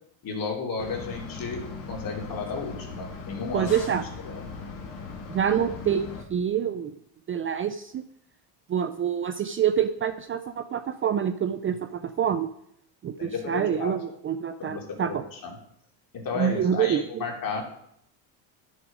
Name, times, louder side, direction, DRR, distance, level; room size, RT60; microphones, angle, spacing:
voice 1, 0.2-3.7 4.2-4.4 13.2-14.0 14.6-15.6 16.1-17.6, left 4 dB, 45° left, 1 dB, 3.1 m, -33 dB
sound 1, 0.8-6.2, left 4 dB, 65° left, 2.3 m, -39 dB
voice 2, 3.5-4.1 5.3-7.0 7.3-8.0 8.7-12.5 13.0-15.2 16.3-17.2, right 8 dB, 25° right, 10 dB, 0.5 m, -26 dB
11.0 x 6.5 x 5.0 m, 0.72 s
supercardioid pair, 105°, 48 cm